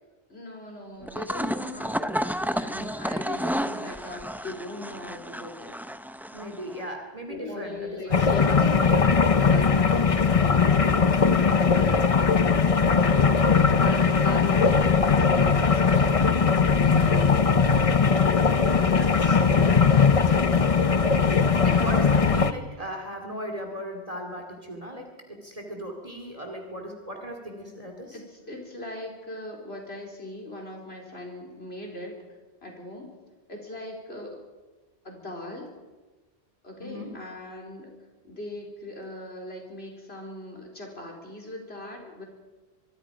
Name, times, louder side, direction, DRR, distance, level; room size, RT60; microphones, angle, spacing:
voice 1, 0.3-5.7 7.3-10.8 11.3-12.0 12.5-13.4 13.7-18.0 19.1-20.8 28.1-32.1 32.6-33.2 33.5-34.4 35.0-35.8 36.6-37.9 38.2-42.2, left 1 dB, 75° left, 0 dB, 4.5 m, -40 dB
sound 1, 1.0-6.8, equal, ahead, 0.6 m, -31 dB
voice 2, 6.3-8.3 11.4-12.0 18.8-19.7 21.5-28.2 36.8-37.2, equal, 35° right, 3 dB, 2.8 m, -37 dB
sound 2, 8.1-22.5, left 5 dB, 35° left, 0.8 m, -20 dB
24.5 x 24.0 x 5.1 m, 1.2 s
omnidirectional pair, 1.1 m